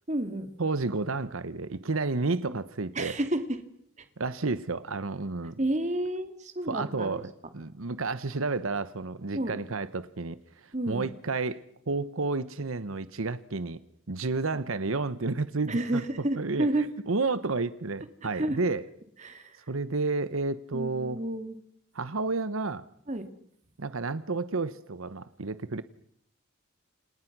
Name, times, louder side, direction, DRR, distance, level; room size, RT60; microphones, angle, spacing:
voice 1, 0.1-0.5 2.5-2.6 3.0-3.6 4.0-4.1 5.6-7.2 9.3-9.5 10.7-11.1 14.5-14.6 15.7-16.9 18.3-18.6 19.2-19.6 20.7-21.6 23.1-23.2, right 1 dB, 35° right, 8 dB, 2.3 m, -30 dB
voice 2, 0.6-3.1 4.2-5.6 6.7-13.8 14.1-16.0 16.4-16.7 17.1-18.8 19.7-21.2 21.9-22.8 23.8-25.8, right 3 dB, 80° right, 14 dB, 1.0 m, -31 dB
29.5 x 27.0 x 6.1 m, 0.68 s
head